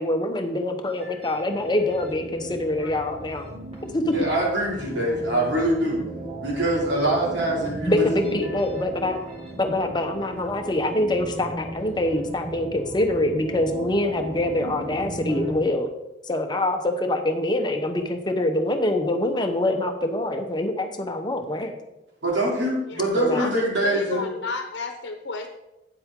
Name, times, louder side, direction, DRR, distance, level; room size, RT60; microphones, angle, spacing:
voice 1, 0.0-3.5 3.8-4.1 7.9-9.2 9.6-15.9 16.3-21.7 23.2-23.5, left 1 dB, 25° left, 5 dB, 0.9 m, -25 dB
sound 1, 0.9-15.5, right 1 dB, 35° right, 2.3 m, -37 dB
voice 2, 4.1-6.0 6.4-8.1 22.2-24.2, right 1 dB, 80° right, -4 dB, 2.8 m, -24 dB
voice 3, 23.4-25.5, left 3 dB, 80° left, 5 dB, 0.9 m, -32 dB
9.0 x 7.7 x 3.7 m, 0.94 s
head